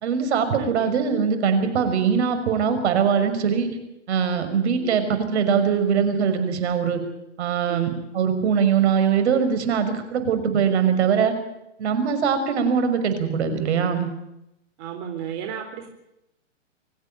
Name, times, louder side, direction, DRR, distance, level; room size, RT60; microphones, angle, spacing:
voice 1, 0.0-3.7 4.1-7.0 7.4-11.3 11.8-14.1, right 7 dB, 60° right, 9 dB, 5.9 m, -22 dB
voice 2, 0.6-1.1 4.8-5.2 7.7-8.0 14.8-15.9, right 9 dB, 40° right, 4 dB, 4.0 m, -34 dB
25.5 x 15.0 x 9.1 m, 0.84 s
hypercardioid pair, 145°, 37 cm